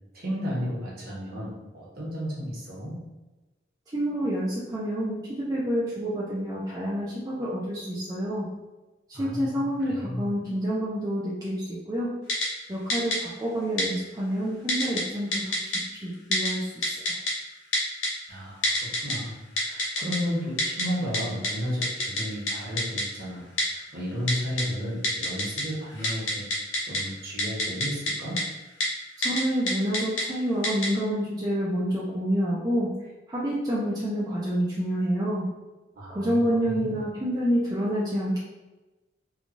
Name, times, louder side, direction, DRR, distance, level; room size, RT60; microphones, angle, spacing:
voice 1, 0.1-2.9 9.1-10.2 18.3-26.4 26.9-28.4 36.0-36.9, equal, 50° right, -6 dB, 1.0 m, -33 dB
voice 2, 3.9-8.5 9.1-12.1 12.7-16.9 29.2-32.9 33.3-35.5 36.1-38.4, equal, 20° right, -7 dB, 0.4 m, -28 dB
Typing, 12.3-12.5 12.9-13.2 13.8-13.9 14.7-15.0 15.3-15.8 16.3-16.5 16.8-17.3 17.7-18.1 18.6-19.1 19.6-20.2 20.6-20.8 21.1-21.2 21.4-21.5 21.8-22.2 22.5-22.6 22.8-23.0 23.6-23.7 24.3-24.6 25.0-25.6 25.9-27.0 27.4-28.1 28.4-28.5 28.8-28.9 29.2-29.4 29.7-30.2 30.6-30.9, left 1 dB, 85° left, 0.8 m, -25 dB
3.0 x 2.3 x 2.5 m, 1.1 s
head